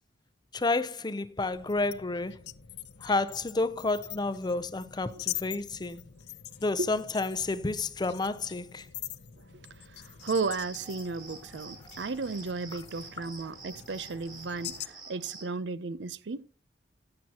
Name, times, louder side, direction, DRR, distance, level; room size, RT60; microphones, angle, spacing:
voice 1, 0.5-2.4 3.0-6.1 6.6-8.9, left 3 dB, 25° left, 0.6 m, -30 dB
sound 1, 1.5-14.9, left 12 dB, 70° left, 0.7 m, -44 dB
voice 2, 9.7-16.4, right 4 dB, 80° right, 0.6 m, -34 dB
sound 2, 10.2-15.6, right 3 dB, 25° right, 4.3 m, -48 dB
15.5 x 7.6 x 2.9 m
head